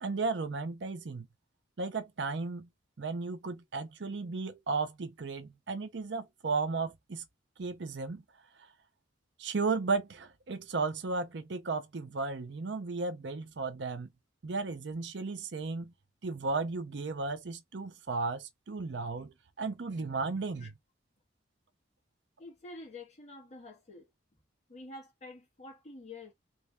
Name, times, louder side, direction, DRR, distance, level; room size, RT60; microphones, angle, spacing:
voice 1, 0.0-1.3 1.8-2.7 3.0-7.2 7.6-8.2 9.4-14.1 14.4-15.9 16.2-20.7, right 4 dB, 65° right, 0.6 m, -34 dB
voice 2, 22.4-24.1 24.7-26.3, left 2 dB, 35° left, 1.6 m, -48 dB
3.2 x 2.6 x 3.4 m
head